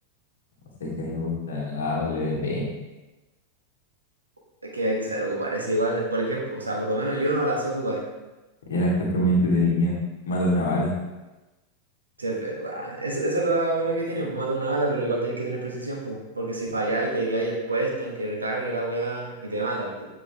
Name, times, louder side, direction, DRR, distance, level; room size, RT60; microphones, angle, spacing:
voice 1, 0.8-2.7 8.7-10.0 10.3-10.9, left 1 dB, 65° left, -4 dB, 1.7 m, -24 dB
voice 2, 4.6-8.0 12.2-20.1, right 2 dB, 80° right, -2 dB, 1.5 m, -27 dB
8.0 x 4.7 x 3.5 m, 1.1 s
figure-of-eight pair, 90°, 0 cm